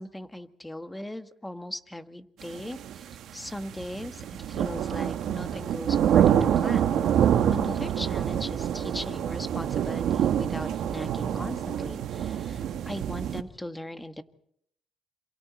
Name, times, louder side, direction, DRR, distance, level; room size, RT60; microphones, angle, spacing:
voice 1, 0.0-7.0 7.5-14.2, left 1 dB, 10° left, 9 dB, 1.6 m, -39 dB
sound 1, 2.5-13.4, right 9 dB, 75° right, 1.3 m, -26 dB
28.0 x 27.0 x 4.3 m, 0.70 s
cardioid pair, 90°, 0 cm